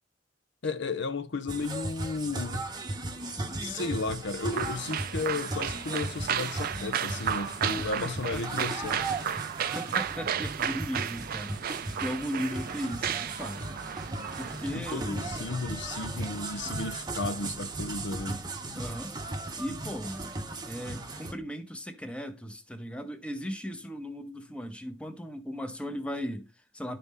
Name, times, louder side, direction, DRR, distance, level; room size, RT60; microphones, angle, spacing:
voice 1, 0.6-2.7 3.6-9.0 14.7-18.4, left 3 dB, 65° left, 0.7 m, -34 dB
sound 1, 1.5-21.3, right 2 dB, 20° right, 0.9 m, -37 dB
sound 2, 4.5-14.8, right 9 dB, 50° right, 0.4 m, -34 dB
voice 2, 7.6-8.7 9.7-11.6 12.0-13.8 14.4-15.3 18.7-19.1 19.6-20.3 20.7-27.0, equal, 5° left, 0.9 m, -37 dB
11.0 x 4.2 x 3.6 m
head